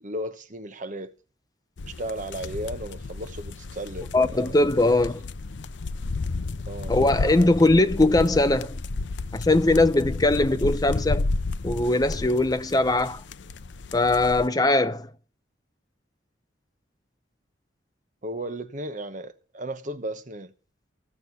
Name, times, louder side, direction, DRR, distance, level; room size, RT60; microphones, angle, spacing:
voice 1, 0.0-1.1 1.9-4.6 6.7-7.0 18.2-20.5, right 1 dB, 40° right, 1.1 m, -35 dB
sound 1, 1.8-14.5, left 3 dB, 70° left, 0.6 m, -32 dB
voice 2, 4.1-5.2 6.9-8.8 9.3-11.3 11.6-13.2 13.9-15.1, left 2 dB, 20° left, 0.7 m, -21 dB
16.0 x 6.6 x 9.4 m
head